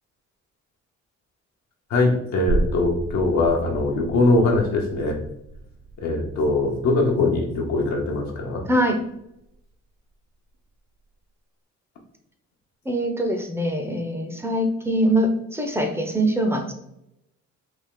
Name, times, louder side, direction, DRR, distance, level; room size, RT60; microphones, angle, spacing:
voice 1, 1.9-5.2 6.0-8.6, left 2 dB, 70° left, 0 dB, 0.8 m, -22 dB
sound 1, 2.5-9.8 10.1-10.2, right 2 dB, 55° right, 0.5 m, -33 dB
voice 2, 8.7-9.0 12.9-16.7, right 1 dB, 10° right, 4 dB, 0.6 m, -23 dB
3.5 x 2.4 x 3.6 m, 0.82 s
cardioid pair, 90°, 30 cm